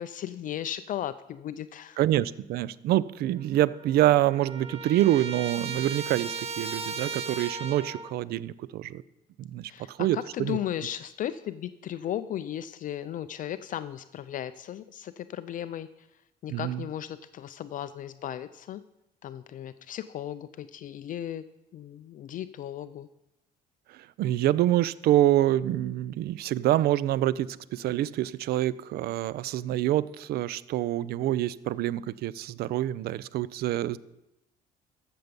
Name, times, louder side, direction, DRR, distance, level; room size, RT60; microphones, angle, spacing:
voice 1, 0.0-2.0 9.7-16.1 16.4-18.8 19.2-21.4 21.7-23.1, left 11 dB, 50° left, 12 dB, 0.4 m, -36 dB
voice 2, 2.0-9.0 9.4-10.6 16.5-16.8 24.2-34.0, right 13 dB, 70° right, 19 dB, 0.5 m, -26 dB
Trumpet, 3.4-3.5 3.7-8.1, right 5 dB, 35° right, 1.0 m, -36 dB
14.0 x 6.9 x 5.2 m, 0.89 s
cardioid pair, 110°, 17 cm